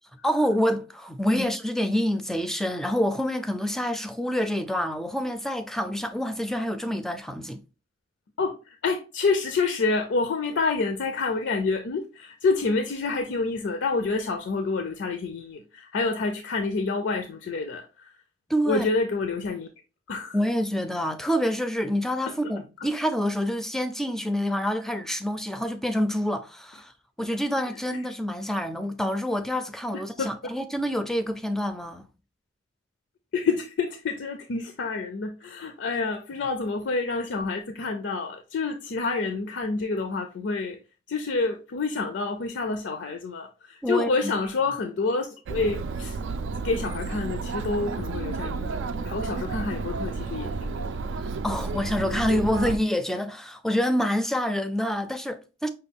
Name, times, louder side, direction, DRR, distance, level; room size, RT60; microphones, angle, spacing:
voice 1, 0.2-7.6 18.5-18.9 20.3-26.9 27.2-32.1 43.8-44.3 51.2-55.7, equal, ahead, 0.4 m, -27 dB
voice 2, 8.4-18.1 18.7-19.7 20.1-20.4 30.2-30.3 33.3-40.8 41.1-46.2 46.6-48.8 49.0-51.0, left 4 dB, 70° left, 0.4 m, -28 dB
Chatter, 45.5-52.8, right 4 dB, 85° right, 0.4 m, -31 dB
5.4 x 2.3 x 3.4 m
head